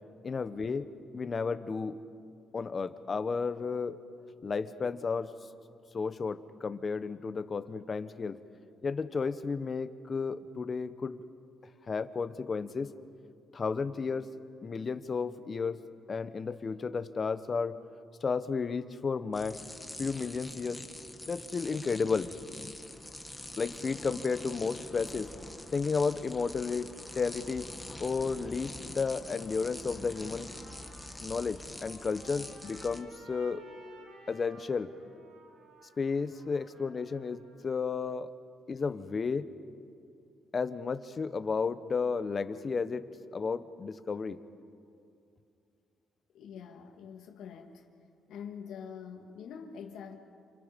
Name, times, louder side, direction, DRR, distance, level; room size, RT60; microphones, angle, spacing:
voice 1, 0.2-2.0 2.5-4.0 4.4-5.3 5.9-8.4 8.8-11.2 11.9-12.9 13.5-14.3 14.6-15.8 16.1-17.8 18.2-19.6 20.0-20.9 21.3-22.7 23.6-25.3 25.7-26.9 27.1-27.7 28.0-30.5 31.2-33.6 34.3-34.9 36.0-38.3 38.7-39.5 40.5-44.4, left 5 dB, 40° left, 11 dB, 1.2 m, -33 dB
sound 1, 19.3-33.0, left 1 dB, 10° left, 2.0 m, -45 dB
Trumpet, 29.8-37.8, right 2 dB, 80° right, 7.1 m, -57 dB
voice 2, 46.3-47.8 48.3-50.2, left 7 dB, 80° left, 3 dB, 2.6 m, -45 dB
28.5 x 28.0 x 5.4 m, 2.5 s
cardioid pair, 90°, 0 cm